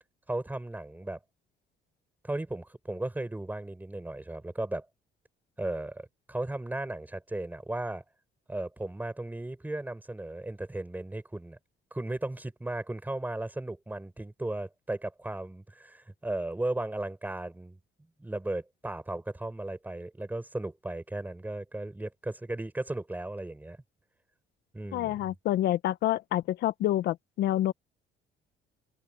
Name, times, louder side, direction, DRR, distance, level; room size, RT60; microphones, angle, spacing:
voice 1, 0.3-1.2 2.2-4.9 5.6-8.0 8.5-11.6 11.9-17.8 18.2-23.8 24.7-25.3, right 2 dB, 10° right, 7.4 m, -36 dB
voice 2, 24.9-27.7, left 13 dB, 75° left, 1.4 m, -28 dB
cardioid pair, 110°, 17 cm